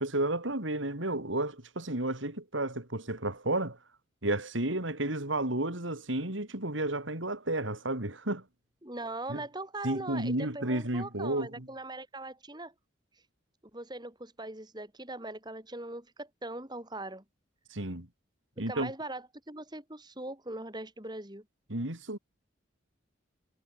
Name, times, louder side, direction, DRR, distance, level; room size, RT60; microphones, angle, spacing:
voice 1, 0.0-3.8 4.2-8.4 9.3-9.4 9.8-11.7 17.7-18.1 18.6-18.9 21.7-22.2, right 1 dB, 80° right, 4.2 m, -32 dB
voice 2, 8.8-12.7 13.7-17.2 18.7-21.4, right 2 dB, 20° right, 4.6 m, -41 dB
head